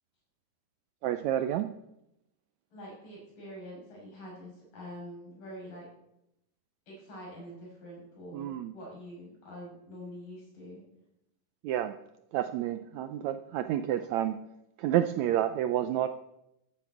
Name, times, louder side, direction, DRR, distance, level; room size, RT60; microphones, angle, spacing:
voice 1, 1.0-1.7 8.3-8.7 11.6-12.0 12.3-14.5 14.8-16.1, right 11 dB, 80° right, 10 dB, 1.6 m, -29 dB
voice 2, 2.7-5.9 6.9-10.8, equal, 85° left, -3 dB, 8.1 m, -45 dB
13.5 x 8.7 x 8.3 m, 0.85 s
omnidirectional pair, 3.8 m